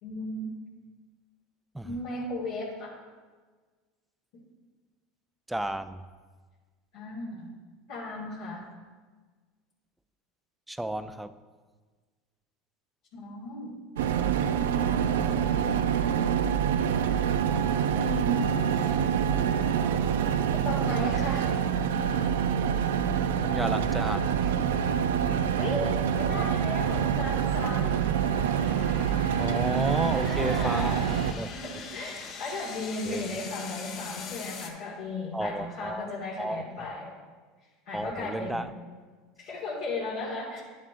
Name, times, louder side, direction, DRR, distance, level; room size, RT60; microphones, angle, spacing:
voice 1, 0.0-0.6 1.8-2.9 6.9-7.5 7.9-8.6 13.1-13.7 15.2-16.0 17.9-18.8 20.6-21.5 25.6-28.1 30.0-31.2 31.5-37.1 37.9-38.7 39.4-40.6, left 2 dB, 70° left, -6 dB, 1.8 m, -35 dB
voice 2, 5.5-6.0 10.7-11.3 23.4-24.7 29.4-31.5 33.0-33.3 35.3-36.1 36.4-37.0 37.9-38.7, right 1 dB, 5° right, 11 dB, 0.4 m, -33 dB
sound 1, 14.0-31.3, right 8 dB, 80° right, 0.4 m, -26 dB
sound 2, 22.6-34.7, left 5 dB, 50° left, 1.1 m, -45 dB
11.0 x 7.3 x 2.5 m, 1.4 s
hypercardioid pair, 90°, 0 cm